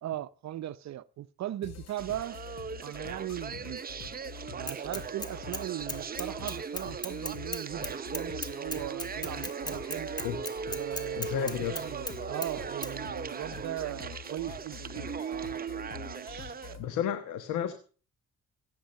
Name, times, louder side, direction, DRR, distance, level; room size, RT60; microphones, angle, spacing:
voice 1, 0.0-2.4 2.8-4.2 4.5-10.1 10.7-15.6 15.9-16.9, right 13 dB, 65° right, 0.7 m, -39 dB
sound 1, 1.6-16.9, left 7 dB, 60° left, 2.0 m, -47 dB
sound 2, 2.0-16.7, right 6 dB, 30° right, 0.8 m, -39 dB
Bicycle / Mechanisms, 4.7-5.6 5.9-12.2 12.4-12.5 12.8-12.9, left 1 dB, 15° left, 1.9 m, -37 dB
voice 2, 11.1-11.8 16.8-17.7, left 9 dB, 85° left, 1.3 m, -32 dB
16.5 x 8.3 x 6.5 m
cardioid pair, 90°, 30 cm